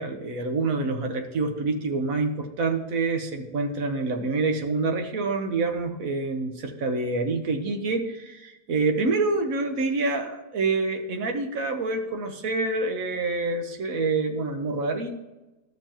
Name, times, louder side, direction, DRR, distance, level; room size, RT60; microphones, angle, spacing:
voice 1, 0.0-15.1, right 3 dB, 60° right, 5 dB, 1.4 m, -27 dB
13.5 x 6.9 x 3.0 m, 1.1 s
omnidirectional pair, 1.8 m